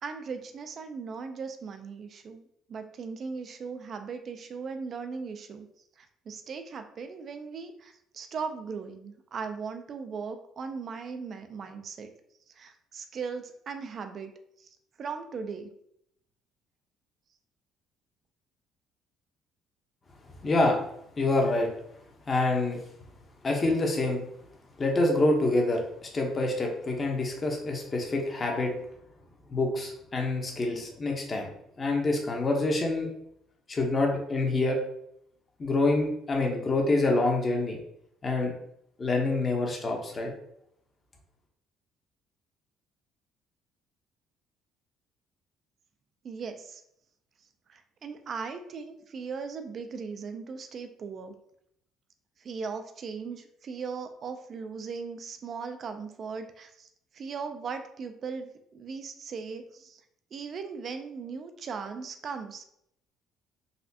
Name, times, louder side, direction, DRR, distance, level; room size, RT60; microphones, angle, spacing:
voice 1, 0.0-2.4 2.7-5.7 6.0-12.1 12.6-14.3 14.6-14.7 15.0-15.7 46.2-46.8 47.7-51.4 52.4-56.9 57.1-60.0 60.3-62.6, right 5 dB, 50° right, 7 dB, 0.5 m, -38 dB
voice 2, 20.4-20.8 21.2-21.7 22.3-22.8 23.4-24.2 24.8-25.8 26.1-28.7 29.5-31.5 31.8-33.1 33.7-34.8 35.6-37.8 38.2-38.5 39.0-40.3, left 2 dB, 30° left, 1 dB, 0.9 m, -26 dB
4.1 x 2.4 x 2.8 m, 0.74 s
cardioid pair, 100°, 0 cm